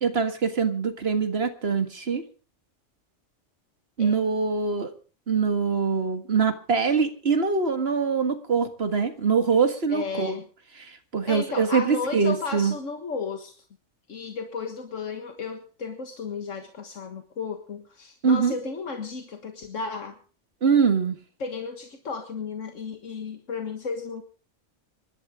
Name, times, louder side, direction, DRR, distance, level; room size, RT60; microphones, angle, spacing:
voice 1, 0.0-2.2 4.0-4.9 5.3-10.4 10.8-12.7 18.2-18.5 20.6-21.2, right 5 dB, 55° right, 8 dB, 2.0 m, -23 dB
voice 2, 9.9-10.5 11.2-13.6 14.1-20.2 21.4-24.2, left 5 dB, 80° left, 5 dB, 1.9 m, -34 dB
26.0 x 12.0 x 3.6 m, 0.39 s
omnidirectional pair, 1.3 m